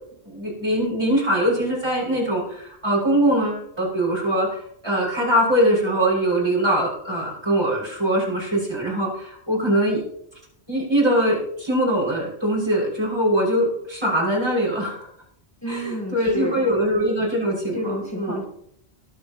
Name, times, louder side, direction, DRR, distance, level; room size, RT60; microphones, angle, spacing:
voice 1, 0.2-10.0 10.7-15.1 15.7-17.8 18.2-18.4, right 1 dB, 25° right, -4 dB, 6.5 m, -22 dB
voice 2, 15.6-16.6 17.7-18.4, equal, 15° left, 0 dB, 1.4 m, -29 dB
21.5 x 8.6 x 3.0 m, 0.69 s
omnidirectional pair, 1.2 m